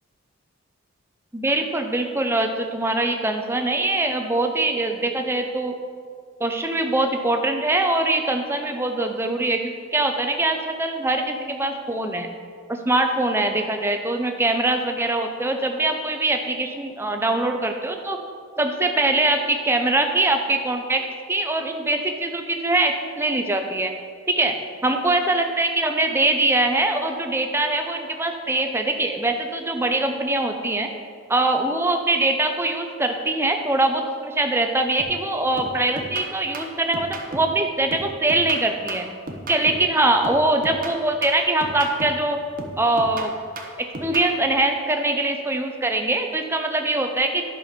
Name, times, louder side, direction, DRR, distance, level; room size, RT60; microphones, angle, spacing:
voice 1, 1.3-5.7 6.4-12.3 12.7-18.2 18.6-23.9 24.3-24.5 24.8-30.9 31.3-39.1 39.5-42.4 42.8-43.3 43.8-47.4, right 2 dB, 10° right, 4 dB, 0.7 m, -23 dB
sound 1, 35.0-35.3 35.6-37.6 37.9-39.9 40.2-42.3 42.6-44.3, right 1 dB, 45° right, 1.0 m, -35 dB
11.0 x 6.1 x 5.1 m, 2.1 s
head